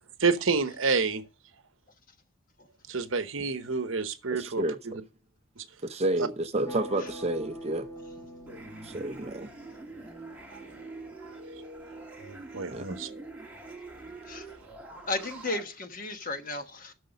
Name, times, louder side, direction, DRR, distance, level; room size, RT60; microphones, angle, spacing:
voice 1, 0.2-1.2 2.9-4.6 5.6-5.7 11.2-11.3 12.2-13.1, right 4 dB, 65° right, 1.0 m, -28 dB
voice 2, 4.3-5.0 5.8-7.9 8.8-9.5 12.7-13.0, right 2 dB, 30° right, 0.6 m, -30 dB
sound 1, 6.6-10.4, equal, 15° left, 1.3 m, -44 dB
sound 2, 8.5-15.6, right 2 dB, 5° right, 2.2 m, -45 dB
voice 3, 15.1-16.9, left 2 dB, 40° left, 1.1 m, -34 dB
11.0 x 6.5 x 5.2 m
head